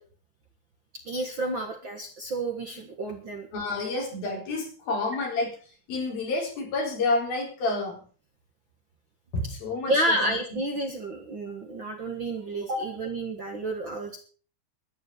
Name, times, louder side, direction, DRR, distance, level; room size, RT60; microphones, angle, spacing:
voice 1, 1.1-3.5 9.9-14.2, right 1 dB, 45° right, 3 dB, 1.7 m, -30 dB
voice 2, 3.5-5.6 5.9-8.0 9.3-10.6, left 2 dB, 75° left, 1 dB, 6.0 m, -29 dB
12.5 x 10.5 x 6.8 m, 0.41 s
omnidirectional pair, 4.2 m